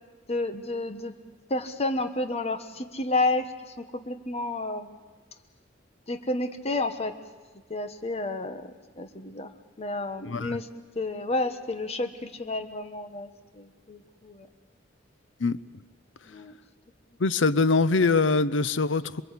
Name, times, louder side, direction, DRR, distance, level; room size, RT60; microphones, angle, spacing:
voice 1, 0.3-1.1 1.5-5.0 6.1-7.1 7.7-8.7 9.0-9.5 9.8-10.7 10.9-14.5 16.3-16.5, left 2 dB, 35° left, 8 dB, 1.4 m, -31 dB
voice 2, 10.3-10.6 15.4-15.6 17.2-19.2, left 3 dB, 80° left, 15 dB, 0.8 m, -23 dB
27.0 x 21.5 x 8.4 m, 1.4 s
head